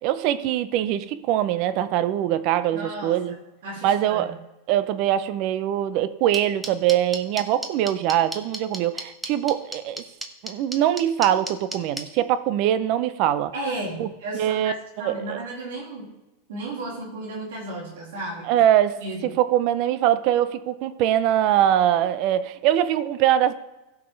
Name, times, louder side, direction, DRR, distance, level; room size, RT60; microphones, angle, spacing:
voice 1, 0.0-3.4 3.8-4.3 4.7-10.0 10.4-13.5 14.0-14.1 14.3-14.7 15.0-15.4 18.4-23.5, right 11 dB, 50° right, 0.6 m, -22 dB
voice 2, 2.7-3.4 3.6-4.4 13.5-16.1 16.5-18.6 19.0-19.4, right 1 dB, 80° right, 2.8 m, -34 dB
sound 1, 6.3-12.0, right 2 dB, 10° right, 1.1 m, -31 dB
15.0 x 5.9 x 3.3 m
supercardioid pair, 125°, 0 cm